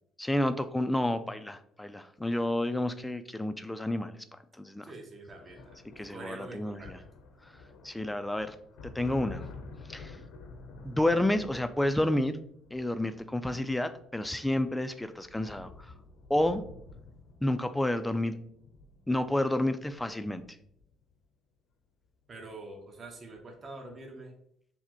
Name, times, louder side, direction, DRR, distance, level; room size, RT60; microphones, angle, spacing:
voice 1, 0.2-4.1 4.6-4.8 6.0-7.0 7.8-8.6 8.9-9.4 9.9-10.2 10.8-12.4 12.7-15.9 16.3-16.6 17.4-18.3 19.1-20.4, left 1 dB, 10° left, 10 dB, 0.3 m, -30 dB
voice 2, 4.8-5.8 6.1-7.0 22.3-24.3, right 2 dB, 40° right, 2 dB, 0.9 m, -45 dB
sound 1, 5.4-21.1 22.3-22.6 22.8-23.5, left 3 dB, 75° left, 0.7 m, -50 dB
5.7 x 2.1 x 3.0 m, 0.70 s
supercardioid pair, 80°, 0 cm